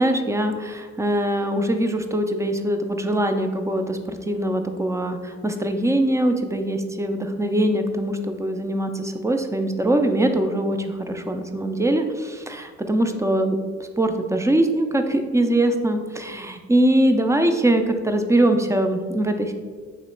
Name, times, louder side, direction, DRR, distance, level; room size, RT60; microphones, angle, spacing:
voice 1, 0.0-13.6 14.0-19.5, right 1 dB, 10° right, 6 dB, 0.3 m, -22 dB
3.0 x 2.9 x 4.2 m, 1.5 s
cardioid pair, 80°, 31 cm